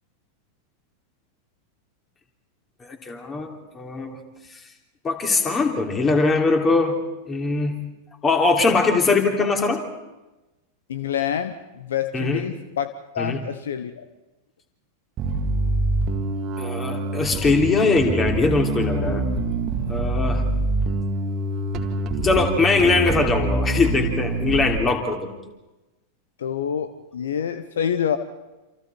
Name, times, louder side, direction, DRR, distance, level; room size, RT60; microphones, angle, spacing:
voice 1, 2.8-4.2 5.0-7.0 7.3-7.8 8.2-9.8 12.1-12.5 13.2-13.4 16.6-19.2 19.9-20.4 22.2-25.3, left 3 dB, 20° left, 4 dB, 3.3 m, -21 dB
voice 2, 10.9-14.1 20.3-20.6 26.4-28.2, left 8 dB, 65° left, 12 dB, 0.9 m, -27 dB
Bass guitar, 15.2-24.8, right 2 dB, 30° right, 2.1 m, -25 dB
28.0 x 27.5 x 4.6 m, 1.1 s
figure-of-eight pair, 90°, 0 cm